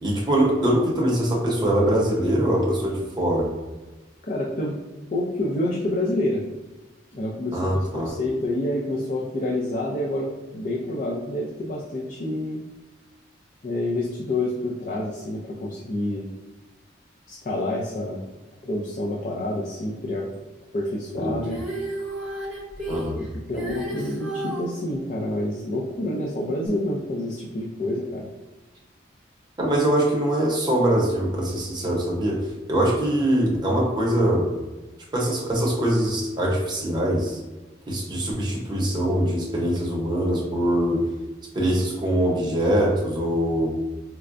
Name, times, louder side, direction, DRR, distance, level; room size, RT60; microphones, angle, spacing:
voice 1, 0.0-3.5 7.5-8.1 21.1-21.4 22.9-23.2 29.6-34.5 35.1-37.4 37.9-41.0 41.5-43.8, right 1 dB, 25° right, -3 dB, 0.8 m, -23 dB
voice 2, 4.2-4.8 5.1-6.4 7.1-12.6 13.6-16.3 17.3-18.2 18.6-20.3 20.7-21.6 23.2-28.2, left 1 dB, 45° left, -3 dB, 0.4 m, -28 dB
Female singing, 21.4-24.7 26.7-26.8, right 1 dB, 5° left, 0.9 m, -32 dB
4.5 x 2.2 x 2.5 m, 1.1 s
head